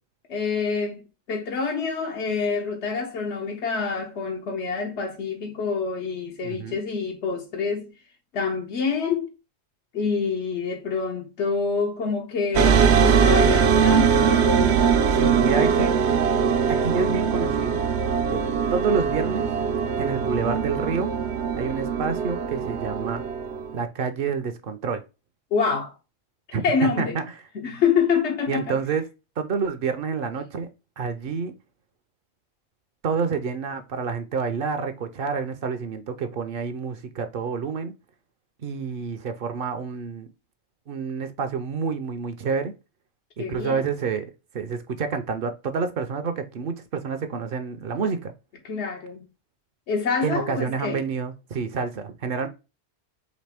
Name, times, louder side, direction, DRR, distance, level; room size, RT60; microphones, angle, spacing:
voice 1, 0.3-7.9 8.3-9.3 9.9-14.9 25.5-25.9 26.6-27.2 27.5-28.8 43.4-43.9 48.6-49.3 49.9-51.0, left 5 dB, 90° left, 1.1 m, -26 dB
voice 2, 6.4-6.8 15.1-16.0 16.7-17.8 18.3-18.4 18.7-19.5 20.0-21.1 21.5-23.2 23.7-25.0 26.5-27.3 28.5-29.0 29.4-30.7 31.0-31.5 33.0-37.9 38.6-40.3 40.9-42.7 43.4-48.3 50.2-52.5, right 5 dB, 60° right, 0.7 m, -28 dB
sound 1, 12.5-23.8, right 6 dB, 85° right, 0.9 m, -21 dB
4.1 x 2.9 x 3.3 m
omnidirectional pair, 1.1 m